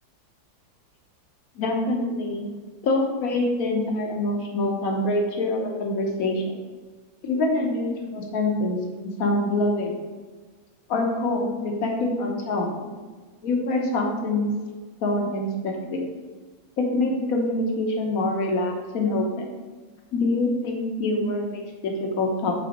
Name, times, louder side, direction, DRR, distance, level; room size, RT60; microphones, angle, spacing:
voice 1, 1.6-2.5 2.8-6.6 7.2-9.9 10.9-12.7 13.4-14.5 15.0-16.0 16.8-19.5 20.1-22.5, left 2 dB, 55° left, 1 dB, 1.3 m, -25 dB
6.9 x 4.0 x 5.2 m, 1.4 s
omnidirectional pair, 2.1 m